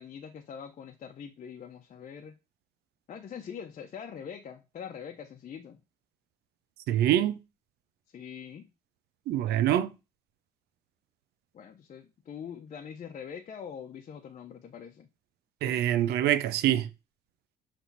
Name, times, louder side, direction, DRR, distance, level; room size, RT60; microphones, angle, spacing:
voice 1, 0.0-2.3 3.1-5.8 8.1-8.7 11.5-15.1, left 7 dB, 45° left, 0.9 m, -43 dB
voice 2, 6.9-7.4 9.3-9.9 15.6-16.9, right 12 dB, 75° right, 0.7 m, -25 dB
7.2 x 3.5 x 4.1 m
cardioid pair, 110°, 17 cm